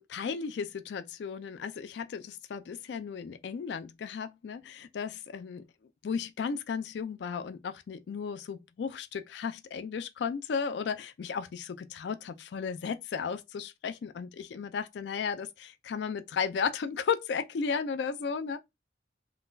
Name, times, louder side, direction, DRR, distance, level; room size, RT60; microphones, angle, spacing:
voice 1, 0.0-5.6 6.0-18.6, left 6 dB, 70° left, 0.3 m, -34 dB
3.6 x 2.3 x 2.5 m
head